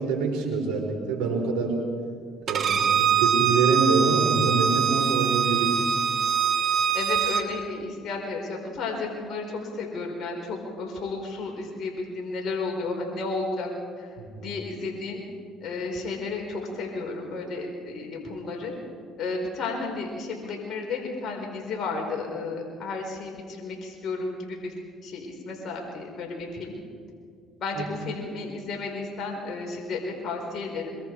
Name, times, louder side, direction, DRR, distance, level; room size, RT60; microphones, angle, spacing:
voice 1, 0.0-1.8 2.5-5.8 14.2-14.5 27.7-27.8, right 4 dB, 85° right, 1 dB, 4.8 m, -26 dB
Bowed string instrument, 2.5-7.4, right 7 dB, 50° right, 2.3 m, -23 dB
voice 2, 6.9-13.7 14.0-15.2 15.6-18.7 19.2-24.7 25.0-26.7 27.6-31.0, left 3 dB, 55° left, 0 dB, 4.7 m, -33 dB
23.5 x 23.5 x 4.8 m, 2.2 s
supercardioid pair, 70°, 0 cm